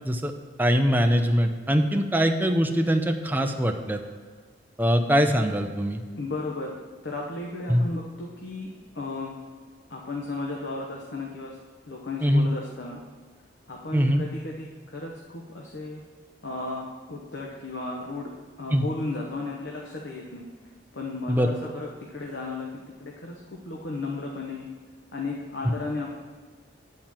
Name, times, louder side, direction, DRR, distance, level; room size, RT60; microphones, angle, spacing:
voice 1, 0.6-4.0 4.8-6.0 7.7-7.8 12.2-12.5 13.9-14.2 18.7-18.9 21.3-21.5, equal, 10° right, 5 dB, 0.6 m, -22 dB
voice 2, 6.2-6.7 7.0-9.4 9.9-11.6 11.8-13.0 13.7-16.0 16.4-18.3 18.6-20.5 20.9-24.7 25.1-26.2, left 3 dB, 65° left, -1 dB, 1.0 m, -34 dB
10.5 x 4.4 x 7.4 m, 1.5 s
head